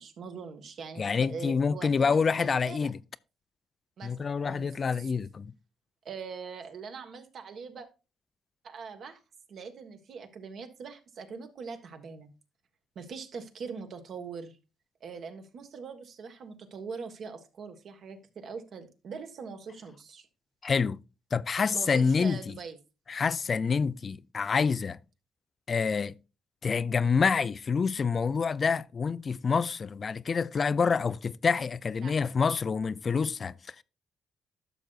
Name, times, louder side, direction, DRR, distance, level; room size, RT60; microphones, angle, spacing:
voice 1, 0.0-2.9 4.0-4.7 5.0-5.1 6.0-7.9 8.6-9.2 9.5-12.3 12.9-14.6 15.0-20.3 21.7-22.8 32.0-32.1, right 5 dB, 60° right, 1.4 m, -42 dB
voice 2, 1.0-3.0 4.0-5.5 20.6-21.0 21.3-22.5 23.1-25.0 25.7-26.1 26.6-33.8, left 5 dB, 40° left, 0.3 m, -27 dB
11.5 x 6.6 x 2.4 m
cardioid pair, 90°, 0 cm